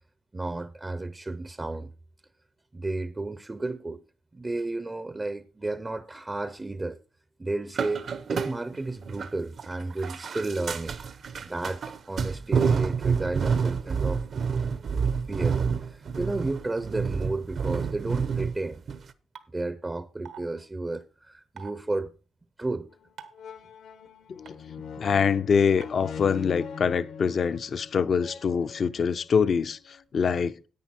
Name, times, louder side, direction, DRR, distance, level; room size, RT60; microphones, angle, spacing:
voice 1, 0.3-1.9 2.7-4.0 4.3-7.0 7.4-10.9 11.4-14.2 15.3-18.8 19.5-22.1 22.6-22.9 24.8-24.9, right 2 dB, 20° right, 0.5 m, -32 dB
sound 1, 7.7-9.3 9.6-18.6 18.9-19.1, right 6 dB, 55° right, 0.7 m, -28 dB
sound 2, 19.4-19.5 20.3-20.4 21.6-21.7 23.2-23.4 24.5-24.6 25.8-25.9, right 8 dB, 80° right, 1.2 m, -43 dB
sound 3, 22.9-23.0 23.3-29.3 29.9-30.0, left 6 dB, 80° left, 1.2 m, -41 dB
voice 2, 25.0-30.6, left 6 dB, 50° left, 0.5 m, -24 dB
10.5 x 8.9 x 4.2 m
cardioid pair, 125°, 0 cm